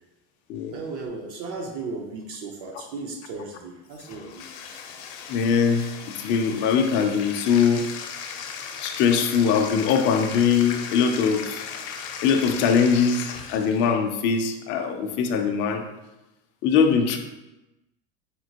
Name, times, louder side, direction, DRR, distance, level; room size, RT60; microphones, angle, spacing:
voice 1, 0.7-4.4, right 3 dB, 60° right, 1 dB, 0.6 m, -35 dB
Bathtub (filling or washing), 3.9-13.9, left 7 dB, 80° left, 0.6 m, -37 dB
voice 2, 5.3-5.9 6.2-7.9 8.8-11.7 12.2-15.8 16.6-17.2, left 6 dB, 40° left, 5 dB, 0.4 m, -21 dB
4.3 x 2.8 x 2.8 m, 1.0 s
cardioid pair, 155°, 32 cm